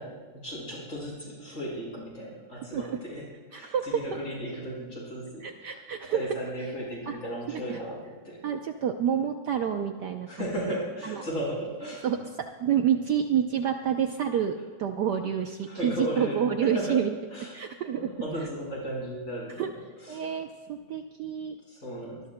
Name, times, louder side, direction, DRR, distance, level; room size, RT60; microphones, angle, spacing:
voice 1, 0.0-5.8 6.1-8.4 10.3-12.1 15.7-17.0 17.3-17.6 18.0-20.3 21.7-22.3, equal, 40° left, -4 dB, 6.0 m, -36 dB
voice 2, 3.5-4.0 5.4-6.2 7.1-7.2 7.5-7.8 8.4-10.7 11.0-11.2 12.0-17.1 17.5-18.1 19.6-19.7 20.1-21.6, right 8 dB, 65° right, 5 dB, 1.2 m, -28 dB
24.0 x 20.0 x 2.2 m, 1.4 s
omnidirectional pair, 2.2 m